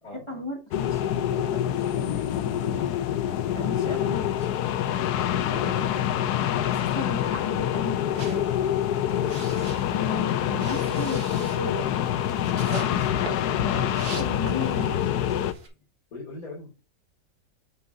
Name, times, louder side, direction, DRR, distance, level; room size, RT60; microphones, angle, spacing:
voice 1, 0.0-2.9 3.2-4.5 5.4-8.5 9.9-12.0 12.6-13.2 13.6-15.1, left 2 dB, 20° left, 1 dB, 1.4 m, -36 dB
sound 1, 0.7-15.5, left 10 dB, 70° left, 1.1 m, -26 dB
sound 2, 8.1-15.0 15.4-15.7, right 4 dB, 60° right, 1.9 m, -42 dB
voice 2, 10.5-10.9 14.5-15.3 16.1-16.7, left 3 dB, 55° left, -3 dB, 3.0 m, -41 dB
8.3 x 6.8 x 2.5 m, 0.32 s
omnidirectional pair, 1.9 m